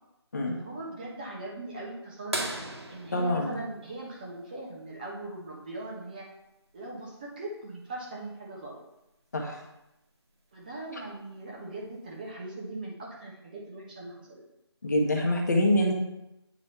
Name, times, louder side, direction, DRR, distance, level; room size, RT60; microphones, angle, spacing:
voice 1, 0.5-2.5 2.9-6.3 6.7-8.8 10.5-14.4, right 2 dB, 20° right, -4 dB, 1.1 m, -40 dB
sound 1, 2.3-4.8 6.7-6.8 9.0-9.1 10.8-11.1 11.9-12.0, right 2 dB, 75° right, 2.1 m, -37 dB
voice 2, 3.1-3.6 9.3-9.6 14.8-15.9, left 1 dB, 40° left, 1 dB, 1.2 m, -25 dB
9.5 x 3.7 x 4.3 m, 0.89 s
figure-of-eight pair, 170°, 14 cm